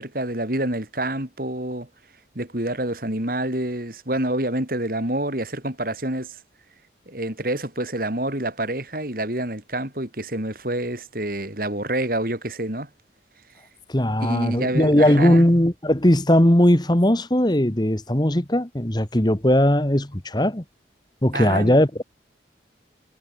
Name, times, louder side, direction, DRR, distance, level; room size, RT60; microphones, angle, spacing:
voice 1, 0.0-1.9 2.4-6.4 7.1-12.9 14.2-15.4 21.3-21.8, right 1 dB, 50° right, 3.8 m, -27 dB
voice 2, 13.9-20.6 21.2-22.0, left 1 dB, 25° left, 1.6 m, -19 dB
head